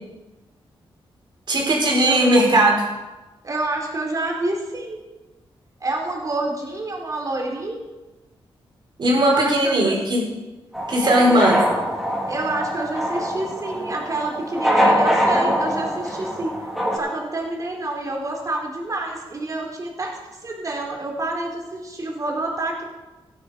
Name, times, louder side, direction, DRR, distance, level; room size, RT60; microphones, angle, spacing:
voice 1, 1.5-2.8 9.0-10.2 10.9-11.6, right 1 dB, 55° right, -2 dB, 4.9 m, -18 dB
voice 2, 3.4-5.0 5.8-7.8 9.2-9.9 11.0-11.7 12.3-16.6 16.9-22.8, right 2 dB, 35° right, -1 dB, 3.9 m, -28 dB
sound 1, 10.7-17.0, equal, 5° right, 3.9 m, -23 dB
16.5 x 10.5 x 5.2 m, 1.1 s
wide cardioid pair, 110°, 10 cm